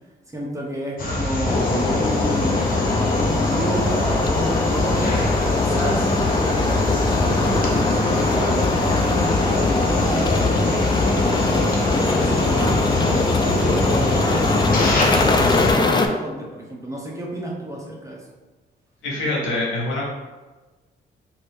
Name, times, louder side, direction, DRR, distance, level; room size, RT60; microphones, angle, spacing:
voice 1, 0.3-2.6 2.9-5.2 5.6-11.4 11.9-18.2, right 1 dB, 15° right, -3 dB, 0.9 m, -31 dB
Forest Background Noise, 1.0-15.7, left 2 dB, 45° left, 0.9 m, -23 dB
sound 1, 1.5-16.1, left 3 dB, 25° left, 0.4 m, -22 dB
voice 2, 19.0-20.1, left 2 dB, 90° left, -4 dB, 1.1 m, -25 dB
2.9 x 2.7 x 3.4 m, 1.2 s
cardioid pair, 80°, 19 cm